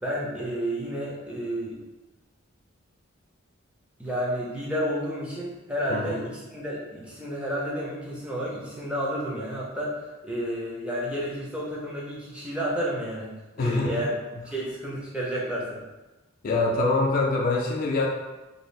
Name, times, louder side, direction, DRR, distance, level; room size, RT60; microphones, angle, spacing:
voice 1, 0.0-1.8 4.0-14.1 14.5-15.8, equal, 5° right, -6 dB, 0.6 m, -31 dB
voice 2, 5.9-6.2 13.6-14.1 16.4-18.1, left 2 dB, 45° left, -1 dB, 0.3 m, -24 dB
2.6 x 2.4 x 3.2 m, 1.1 s
head